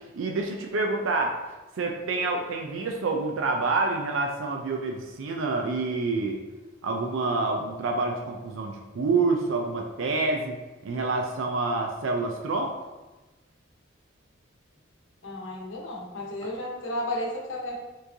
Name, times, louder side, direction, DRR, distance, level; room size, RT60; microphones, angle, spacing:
voice 1, 0.1-1.3 1.8-6.4 6.8-12.7, right 3 dB, 80° right, 1 dB, 0.4 m, -27 dB
voice 2, 15.2-17.7, left 1 dB, 75° left, -2 dB, 0.9 m, -33 dB
4.3 x 3.1 x 2.7 m, 1.1 s
head